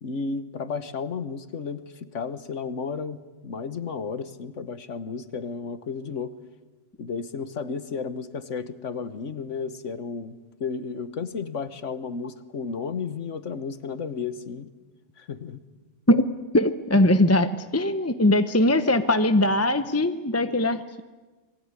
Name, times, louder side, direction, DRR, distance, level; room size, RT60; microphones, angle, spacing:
voice 1, 0.0-6.3 7.0-14.7 15.2-15.6, left 5 dB, 75° left, 12 dB, 1.6 m, -33 dB
voice 2, 16.5-21.0, left 1 dB, 15° left, 10 dB, 0.7 m, -21 dB
27.0 x 21.0 x 9.7 m, 1.2 s
omnidirectional pair, 1.3 m